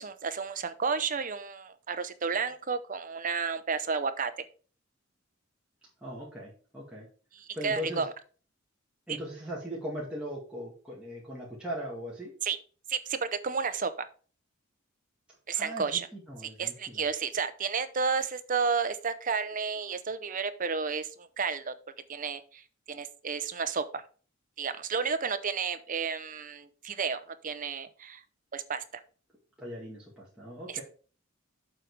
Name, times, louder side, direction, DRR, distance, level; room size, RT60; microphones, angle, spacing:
voice 1, 0.0-4.3 7.3-8.1 9.1-9.2 12.4-12.6 12.9-14.1 15.5-16.1 16.6-21.7 22.1-24.0 24.6-28.2 28.5-28.8 30.7-30.8, right 5 dB, 40° right, 11 dB, 0.7 m, -32 dB
voice 2, 6.0-7.1 7.5-8.0 9.1-12.3 15.6-17.1 29.6-30.8, equal, 5° right, -7 dB, 2.1 m, -39 dB
7.4 x 5.1 x 4.9 m, 0.40 s
head